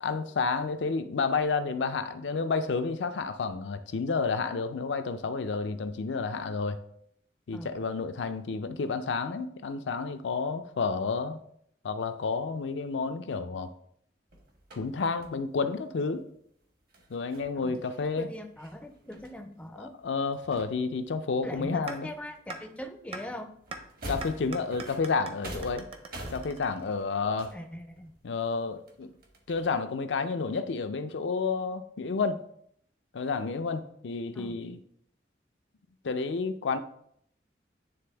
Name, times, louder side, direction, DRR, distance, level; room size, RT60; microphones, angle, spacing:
voice 1, 0.0-6.8 7.5-11.4 11.8-13.7 14.8-16.3 17.1-18.3 19.8-22.1 24.1-25.9 26.3-27.5 28.2-29.1 29.5-32.4 33.1-34.8 36.0-36.8, left 4 dB, 85° left, 9 dB, 0.5 m, -30 dB
sound 1, 14.3-15.4 16.9-20.0 20.3-21.3 21.6-22.5 22.8-29.7, right 1 dB, 55° right, 1.1 m, -46 dB
voice 2, 18.2-20.0 21.4-23.6 27.5-28.1 34.3-34.6, equal, 5° left, 5 dB, 0.4 m, -41 dB
sound 2, 21.9-22.0 22.5-22.6 23.1-23.2 23.7-23.8 24.2-27.1, right 3 dB, 30° right, 0.6 m, -41 dB
9.4 x 3.4 x 3.4 m, 0.70 s
head